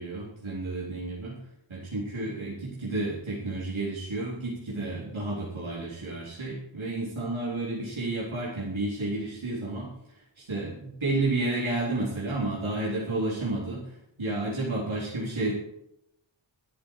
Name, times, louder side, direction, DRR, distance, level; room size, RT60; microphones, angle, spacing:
voice 1, 0.0-1.4 1.7-15.5, right 2 dB, 75° right, -6 dB, 4.0 m, -31 dB
13.0 x 11.5 x 4.9 m, 0.80 s
wide cardioid pair, 75°, 48 cm